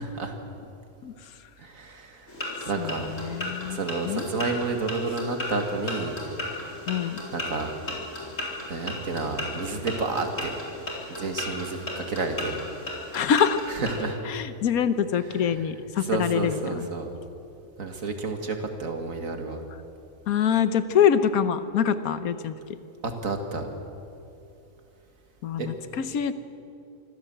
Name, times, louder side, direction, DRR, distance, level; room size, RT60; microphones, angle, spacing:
voice 1, 1.6-2.3 2.7-3.1 3.5-6.2 7.3-7.7 8.7-10.6 11.1-12.6 13.7-14.2 15.4-15.5 16.1-17.1 17.8-19.6 23.0-23.7 25.6-25.7, right 3 dB, 70° right, 5 dB, 2.3 m, -30 dB
sound 1, 2.3-14.0, left 1 dB, 65° left, 4.5 m, -35 dB
voice 2, 2.8-3.8 4.0-4.2 6.9-7.2 13.1-13.6 14.2-16.9 20.3-22.5 25.4-26.3, left 8 dB, 90° left, 12 dB, 1.3 m, -25 dB
25.0 x 16.0 x 7.8 m, 2.7 s
omnidirectional pair, 1.5 m